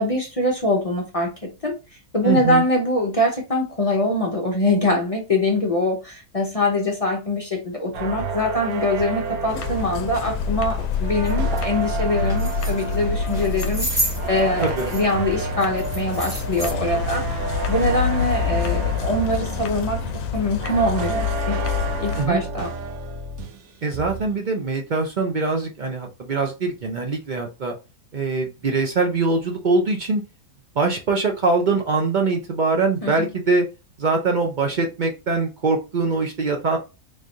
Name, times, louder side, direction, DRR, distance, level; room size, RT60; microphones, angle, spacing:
voice 1, 0.0-1.8 2.1-20.0 20.3-21.6 22.0-22.7 33.0-33.3, left 1 dB, 40° left, 0.5 m, -23 dB
voice 2, 2.2-2.6 14.6-14.9 22.2-22.4 23.8-27.7 28.1-30.2 30.8-33.7 34.0-36.8, right 3 dB, 55° right, 0.5 m, -22 dB
sound 1, 7.9-23.7 23.9-24.4, right 4 dB, 75° right, 1.2 m, -31 dB
sound 2, 8.9-9.0 9.5-9.7 10.1-10.3 10.8-11.0 11.3-11.7 12.2-13.0 13.3-15.1 15.4-16.7, equal, 5° right, 1.0 m, -31 dB
sound 3, 9.5-22.3, left 6 dB, 75° left, 1.0 m, -27 dB
3.6 x 3.2 x 2.6 m
omnidirectional pair, 1.6 m